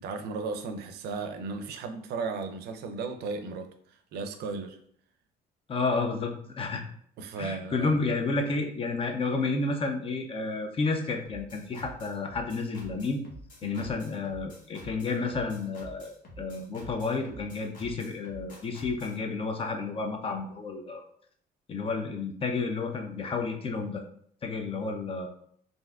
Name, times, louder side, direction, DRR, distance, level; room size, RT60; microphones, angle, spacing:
voice 1, 0.0-4.8 7.2-8.1 13.6-13.9, right 4 dB, 75° right, 8 dB, 0.4 m, -35 dB
voice 2, 5.7-6.8 7.4-13.2 13.6-21.0 21.7-24.0 24.4-25.3, left 3 dB, 35° left, 4 dB, 0.5 m, -31 dB
sound 1, 11.2-19.2, equal, 50° left, 1.0 m, -48 dB
3.3 x 2.6 x 2.4 m, 0.63 s
cardioid pair, 110°, 17 cm